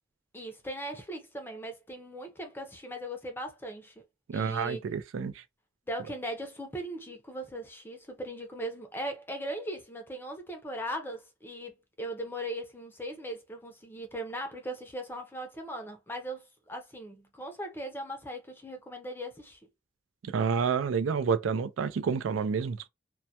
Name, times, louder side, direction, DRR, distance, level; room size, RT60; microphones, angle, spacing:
voice 1, 0.3-3.9 4.3-4.8 5.9-19.6, right 1 dB, 10° left, 0.5 m, -39 dB
voice 2, 4.3-5.4 20.3-22.9, right 6 dB, 90° right, 0.4 m, -29 dB
2.2 x 2.1 x 2.7 m
head